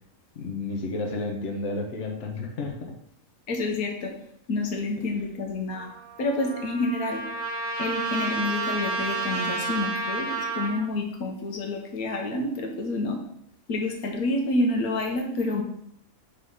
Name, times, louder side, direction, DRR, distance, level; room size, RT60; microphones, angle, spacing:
voice 1, 0.3-2.9, left 3 dB, 55° left, 1 dB, 1.2 m, -31 dB
voice 2, 3.5-4.1 4.5-5.9 6.2-7.2 7.8-13.2 13.7-15.6, left 2 dB, 85° left, 2 dB, 1.4 m, -28 dB
Trumpet, 5.7-10.9, right 3 dB, 40° right, 1.4 m, -31 dB
5.0 x 4.1 x 5.4 m, 0.71 s
omnidirectional pair, 1.5 m